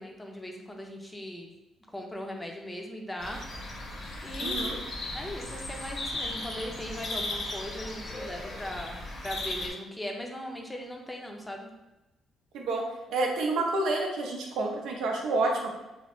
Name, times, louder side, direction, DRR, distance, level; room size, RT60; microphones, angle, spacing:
voice 1, 0.0-1.5 1.9-3.4 4.2-4.7 5.1-11.7, left 1 dB, 15° left, 1 dB, 0.5 m, -39 dB
sound 1, 3.2-9.7, left 2 dB, 55° left, 0.7 m, -36 dB
voice 2, 4.4-4.8 12.5-12.8 13.1-15.7, right 2 dB, 80° right, 1 dB, 0.5 m, -29 dB
3.0 x 2.0 x 3.0 m, 0.99 s
cardioid pair, 90°, 0 cm